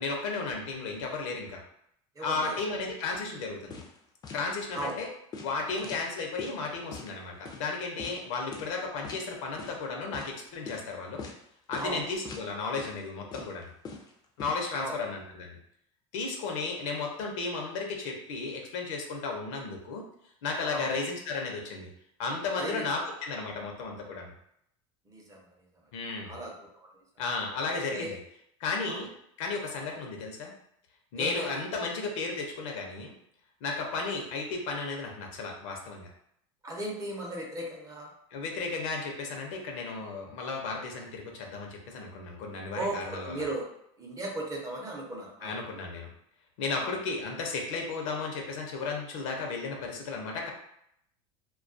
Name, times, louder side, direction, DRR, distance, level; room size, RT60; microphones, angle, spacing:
voice 1, 0.0-1.6 2.2-3.8 4.3-5.1 5.4-11.2 11.7-13.7 14.4-15.6 16.1-20.0 20.4-21.9 22.2-24.3 25.9-26.4 27.2-28.2 28.6-29.1 29.4-30.5 31.1-33.1 33.6-36.1 38.3-43.4 45.4-46.1 46.6-50.5, left 4 dB, 75° left, 1 dB, 0.6 m, -34 dB
voice 2, 2.2-2.6 4.7-5.0 11.8-12.0 14.8-15.0 20.7-20.9 22.6-22.9 25.1-25.4 26.2-26.9 27.9-28.1 28.9-29.0 31.2-31.6 33.8-33.9 36.6-38.1 42.7-43.7 44.0-45.5 46.8-46.9, right 1 dB, 20° right, -1 dB, 0.6 m, -36 dB
sound 1, 3.7-4.0 4.2-4.4 4.8-5.0 5.3-6.6 6.9-7.1 7.4-7.6 8.0-8.2 8.5-8.8 9.0-9.2 9.6-9.8 10.1-10.3 10.7-10.8 11.2-11.4 11.7-11.9 12.2-12.5 12.8-13.0 13.3-14.5, left 4 dB, 25° left, 0.4 m, -42 dB
2.3 x 2.2 x 2.5 m, 0.73 s
supercardioid pair, 120°, 16 cm